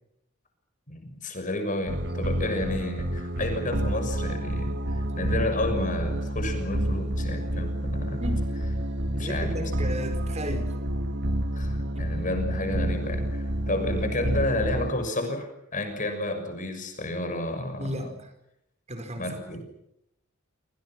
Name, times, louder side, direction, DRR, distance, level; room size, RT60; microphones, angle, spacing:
voice 1, 0.9-8.2 9.1-9.5 11.5-18.1 19.2-19.6, left 1 dB, 40° left, 7 dB, 6.4 m, -31 dB
Ambush (Suspense Music), 1.9-14.9, right 1 dB, 55° right, 1.8 m, -29 dB
voice 2, 9.2-10.8 17.8-18.3 18.9-19.6, equal, 30° right, 7 dB, 4.8 m, -34 dB
28.5 x 26.0 x 6.1 m, 0.80 s
head